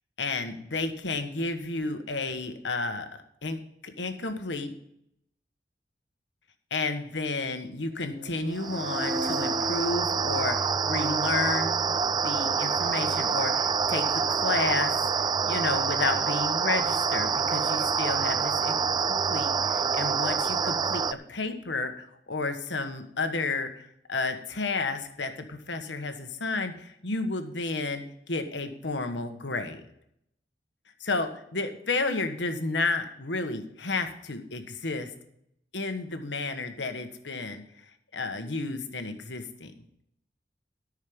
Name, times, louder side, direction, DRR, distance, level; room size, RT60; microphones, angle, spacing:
voice 1, 0.2-3.1 3.4-3.6 3.8-4.7 6.7-14.9 15.2-18.8 19.3-29.8 31.0-35.1 35.7-37.6 38.1-39.7, left 3 dB, 85° left, 7 dB, 1.4 m, -31 dB
sound 1, 8.1-12.2, left 1 dB, 65° right, 4.8 m, -37 dB
sound 2, 8.6-21.1, right 6 dB, 25° right, 0.3 m, -27 dB
13.5 x 6.5 x 5.3 m, 0.74 s
head